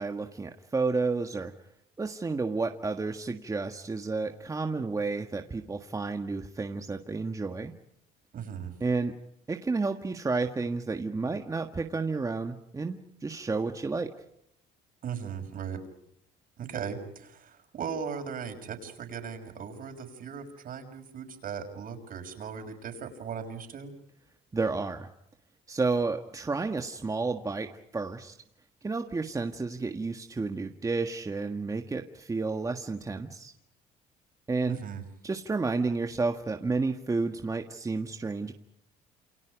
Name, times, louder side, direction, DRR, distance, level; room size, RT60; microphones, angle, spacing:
voice 1, 0.0-1.5 2.0-7.7 8.8-9.1 9.5-14.1 24.5-25.1 25.7-28.3 28.8-33.5 34.5-34.8 35.2-38.5, right 3 dB, 20° right, 5 dB, 1.6 m, -31 dB
voice 2, 8.3-8.7 15.0-15.8 16.6-23.9 34.7-35.0, right 7 dB, 55° right, 6 dB, 6.2 m, -38 dB
29.0 x 28.5 x 5.1 m, 0.78 s
cardioid pair, 110°, 17 cm